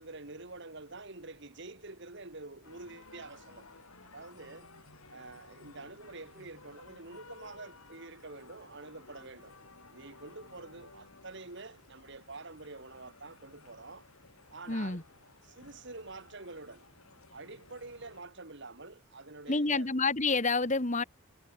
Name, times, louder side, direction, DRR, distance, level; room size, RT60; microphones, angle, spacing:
voice 1, 0.0-4.7 5.1-9.5 9.9-14.1 14.5-15.0 15.4-16.8 17.3-20.1, right 3 dB, 55° right, 2.5 m, -47 dB
sound 1, 2.6-18.2, left 3 dB, 85° left, 5.5 m, -56 dB
voice 2, 14.7-15.0 19.5-21.0, left 3 dB, 35° left, 1.6 m, -28 dB
head